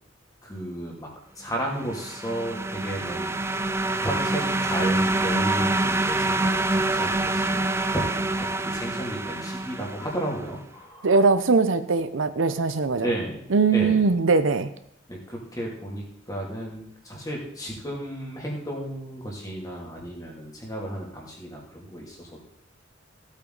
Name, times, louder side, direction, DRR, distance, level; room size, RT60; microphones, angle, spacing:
voice 1, 0.4-1.1 1.4-3.6 4.0-11.1 13.0-13.4 13.7-14.0 15.1-22.4, right 1 dB, 20° left, -2 dB, 2.6 m, -33 dB
sound 1, 1.7-10.4, right 2 dB, 15° right, 0.5 m, -26 dB
voice 2, 11.0-13.1 13.5-14.7, right 4 dB, 75° right, 11 dB, 0.7 m, -21 dB
15.0 x 8.5 x 4.0 m, 0.72 s
head